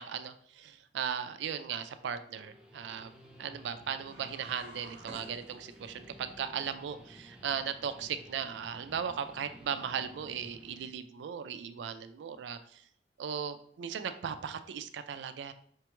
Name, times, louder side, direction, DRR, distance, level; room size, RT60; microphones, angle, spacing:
voice 1, 0.0-3.1 3.4-12.8 13.2-15.5, right 7 dB, 85° right, 10 dB, 0.3 m, -37 dB
Guitar, 2.3-10.9, equal, 5° right, 0.3 m, -54 dB
sound 1, 4.0-6.0, right 1 dB, 65° right, 1.0 m, -50 dB
5.1 x 2.3 x 2.9 m, 0.64 s
head